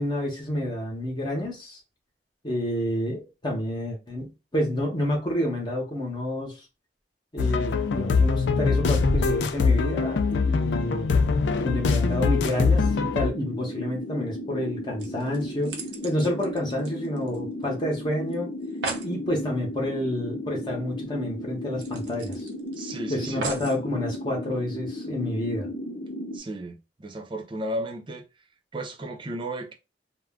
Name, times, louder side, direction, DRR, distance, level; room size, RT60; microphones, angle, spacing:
voice 1, 0.0-1.8 2.4-6.6 7.3-11.1 11.6-18.5 19.0-22.5 23.1-25.7, left 1 dB, 25° left, 0.8 m, -29 dB
sound 1, 7.4-13.3, left 4 dB, 80° left, 0.4 m, -23 dB
sound 2, 11.5-26.4, left 1 dB, 65° left, 0.8 m, -35 dB
sound 3, 14.6-14.7 15.0-17.6 17.9-18.0 18.3-18.4 18.6-19.1 20.6-20.7 21.1-21.2 21.8-22.8 23.4-23.8 24.5-24.6, right 4 dB, 80° right, 0.7 m, -36 dB
voice 2, 22.8-23.5 26.3-28.3 28.7-29.7, right 1 dB, 30° right, 0.5 m, -34 dB
2.4 x 2.1 x 3.5 m
head